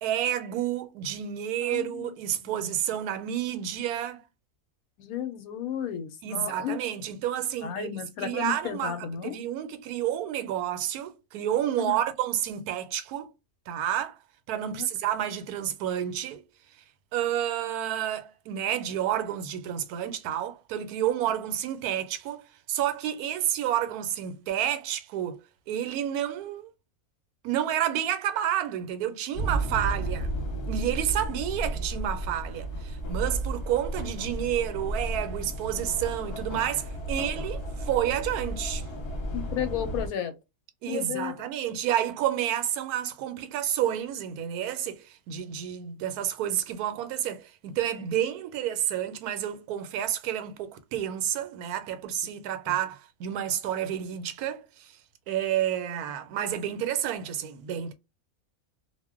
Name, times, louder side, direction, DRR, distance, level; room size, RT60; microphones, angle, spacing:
voice 1, 0.0-4.2 6.2-13.3 13.7-14.2 14.5-16.4 17.1-25.4 25.7-26.7 27.4-30.3 30.7-38.8 40.8-54.9 55.3-57.9, right 11 dB, 85° right, 1.1 m, -30 dB
voice 2, 1.7-2.1 2.4-2.5 5.0-6.8 7.6-9.4 11.8-12.0 14.6-14.9 39.3-40.3 40.9-41.3 52.7-52.8, left 9 dB, 80° left, 1.0 m, -33 dB
sound 1, 29.3-40.1, right 1 dB, 50° left, 0.9 m, -33 dB
2.4 x 2.1 x 3.5 m
omnidirectional pair, 1.6 m